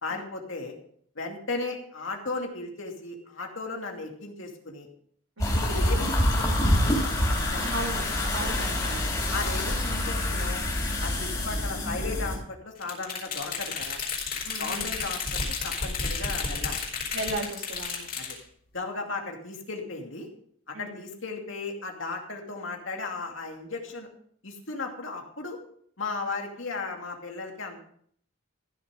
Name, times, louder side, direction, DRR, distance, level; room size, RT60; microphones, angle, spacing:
voice 1, 0.0-0.7 1.1-4.9 5.4-7.8 8.4-8.5 8.8-9.0 9.3-10.6 11.0-14.0 14.6-16.8 18.1-18.4 18.7-20.3 20.7-24.1 24.4-25.6 26.0-27.8, left 3 dB, 65° left, 2 dB, 2.6 m, -36 dB
sound 1, 5.4-12.4, left 1 dB, 20° left, 3.7 m, -26 dB
voice 2, 7.6-9.0 14.4-14.9 17.1-18.1 20.7-21.0, right 2 dB, 80° right, 2 dB, 2.6 m, -36 dB
sound 2, 12.8-18.4, left 4 dB, 45° left, 4.9 m, -32 dB
15.0 x 7.0 x 5.4 m, 0.62 s
head